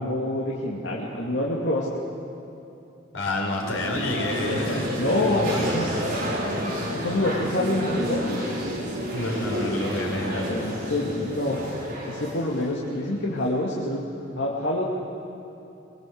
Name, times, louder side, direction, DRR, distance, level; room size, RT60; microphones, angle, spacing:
voice 1, 0.0-2.0 5.0-5.9 6.9-8.4 10.5-11.6 12.1-14.0 14.4-14.8, left 1 dB, 65° left, -4 dB, 2.5 m, -26 dB
voice 2, 3.1-5.0 5.3-5.6 5.9-6.2 7.0-7.1 9.1-10.5, left 1 dB, 85° left, -1 dB, 5.0 m, -29 dB
sound 1, 3.5-13.5, equal, 45° right, 6.2 m, -30 dB
23.0 x 23.0 x 8.0 m, 2.9 s
head